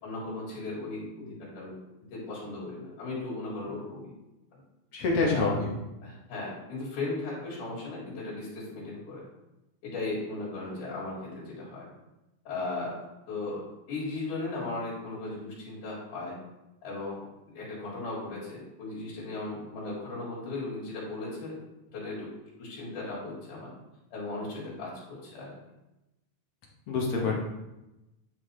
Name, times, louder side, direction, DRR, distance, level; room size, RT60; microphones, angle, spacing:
voice 1, 0.0-1.7 2.1-4.1 5.2-5.6 6.0-9.2 9.8-11.9 12.4-13.0 13.3-13.6 13.9-16.4 16.8-17.2 17.5-21.6 21.9-22.3 22.6-23.7 24.1-25.5, left 2 dB, 85° left, -8 dB, 3.4 m, -37 dB
voice 2, 4.9-5.7 26.9-27.4, left 3 dB, 60° left, -2 dB, 1.8 m, -26 dB
9.2 x 4.2 x 3.2 m, 0.94 s
omnidirectional pair, 3.5 m